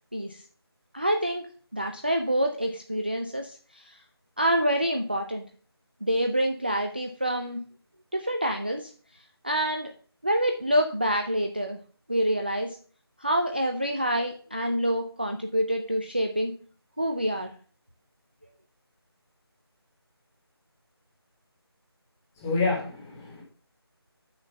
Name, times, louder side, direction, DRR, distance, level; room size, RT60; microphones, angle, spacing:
voice 1, 0.9-4.0 4.4-5.4 6.0-7.6 8.1-8.9 9.4-9.9 10.2-11.8 12.1-12.8 13.2-16.5 17.0-17.5, equal, 25° right, 4 dB, 0.4 m, -27 dB
voice 2, 22.4-23.4, left 3 dB, 5° left, -3 dB, 0.9 m, -28 dB
6.3 x 6.0 x 5.2 m, 0.43 s
figure-of-eight pair, 170°, 14 cm